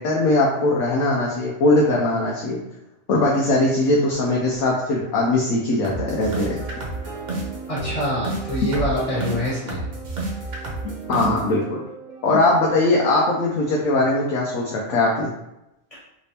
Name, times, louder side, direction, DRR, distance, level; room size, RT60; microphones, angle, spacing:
voice 1, 0.0-2.6 3.1-6.6 8.6-8.7 10.8-11.8 12.2-15.3, left 2 dB, 85° left, -3 dB, 1.1 m, -20 dB
sound 1, 5.8-13.8, right 3 dB, 65° right, 1.2 m, -31 dB
voice 2, 7.7-9.8 15.9-16.0, equal, 25° left, -8 dB, 1.3 m, -25 dB
3.3 x 3.3 x 2.7 m, 0.89 s
omnidirectional pair, 1.4 m